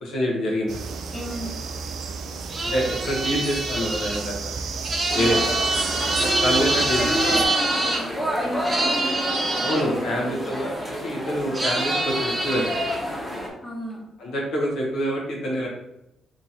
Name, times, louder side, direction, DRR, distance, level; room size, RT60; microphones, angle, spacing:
voice 1, 0.0-0.8 2.6-4.5 5.1-5.5 6.4-7.4 9.6-12.7 14.2-15.7, equal, 75° left, -2 dB, 1.0 m, -26 dB
sound 1, 0.7-7.5, right 5 dB, 70° right, 0.4 m, -32 dB
voice 2, 1.1-1.5 5.1-5.4 6.0-10.6 13.6-14.0, equal, 20° left, -3 dB, 1.1 m, -32 dB
sound 2, 2.5-8.0 8.6-9.8 11.5-13.0, right 2 dB, 20° right, 0.8 m, -25 dB
sound 3, 5.1-13.5, equal, 5° left, 1.0 m, -30 dB
2.9 x 2.9 x 3.9 m, 0.87 s
cardioid pair, 90°, 0 cm